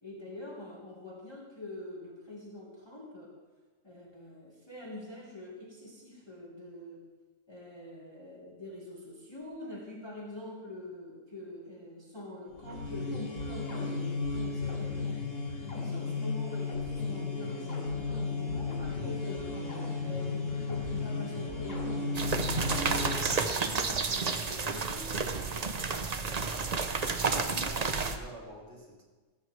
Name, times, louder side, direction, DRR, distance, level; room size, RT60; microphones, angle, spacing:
voice 1, 0.0-3.4 3.8-7.1 7.5-15.0 15.7-19.6 20.0-25.1, left 1 dB, 20° left, -3 dB, 1.8 m, -45 dB
sound 1, 12.5-23.6, left 3 dB, 75° left, 2.8 m, -34 dB
sound 2, 22.1-28.2, right 4 dB, 35° right, 0.8 m, -31 dB
voice 2, 27.2-29.0, equal, 60° right, -2 dB, 2.8 m, -47 dB
16.5 x 14.5 x 3.3 m, 1.3 s
omnidirectional pair, 1.3 m